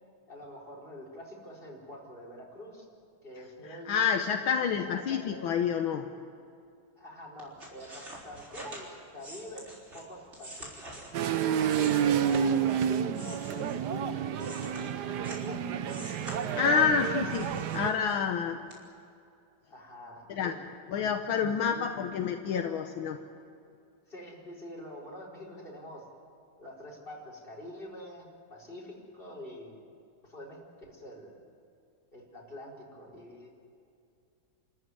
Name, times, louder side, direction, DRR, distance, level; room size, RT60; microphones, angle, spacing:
voice 1, 0.3-2.8 3.2-3.9 4.5-5.4 7.0-9.7 9.9-11.1 11.4-15.9 19.7-20.6 21.6-21.8 24.1-26.0 26.6-29.8 30.2-30.6 30.9-31.4 32.1-33.5, left 1 dB, 25° left, -3 dB, 4.8 m, -46 dB
voice 2, 3.7-6.0 16.5-18.6 20.3-20.5 20.9-23.2, left 7 dB, 75° left, 5 dB, 1.7 m, -28 dB
sound 1, 7.4-12.7 13.1-15.5 15.8-16.9 17.3-18.3 18.7-18.8, right 1 dB, 30° right, 4.2 m, -46 dB
sound 2, 11.1-17.9, right 8 dB, 60° right, 1.3 m, -29 dB
28.0 x 14.0 x 9.7 m, 2.4 s
omnidirectional pair, 2.3 m